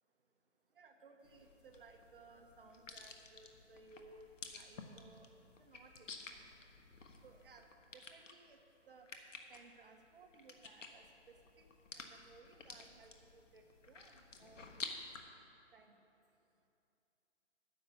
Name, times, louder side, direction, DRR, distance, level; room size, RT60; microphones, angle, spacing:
voice 1, 0.7-5.3 5.6-6.1 7.2-7.7 7.9-8.6 8.9-9.1 9.5-11.7 11.9-14.7 15.7-16.0, right 3 dB, 45° right, 4 dB, 1.1 m, -61 dB
sound 1, 1.2-15.2, left 4 dB, 85° left, 1.5 m, -52 dB
10.5 x 7.1 x 9.3 m, 2.8 s
hypercardioid pair, 170°, 36 cm